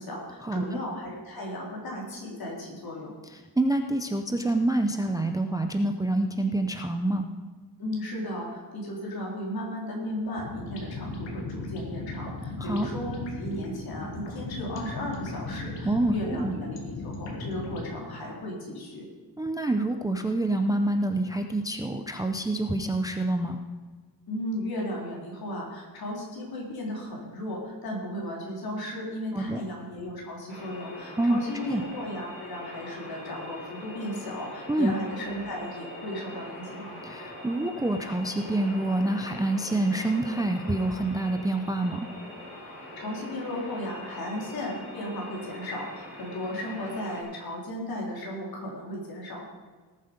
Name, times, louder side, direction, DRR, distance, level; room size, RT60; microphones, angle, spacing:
voice 1, 0.0-3.1 7.8-19.1 24.3-37.0 43.0-49.5, left 1 dB, 60° left, -2 dB, 3.7 m, -35 dB
voice 2, 3.3-7.3 12.6-12.9 15.8-16.5 19.4-23.6 29.3-29.6 31.2-31.4 31.7-31.8 34.7-34.9 37.0-42.1, right 2 dB, 10° right, 5 dB, 0.5 m, -27 dB
sound 1, 10.3-17.9, left 2 dB, 85° left, 2.4 m, -37 dB
sound 2, 30.5-47.2, left 1 dB, 25° left, 3.6 m, -43 dB
18.5 x 7.6 x 5.1 m, 1.4 s
wide cardioid pair, 175°, 42 cm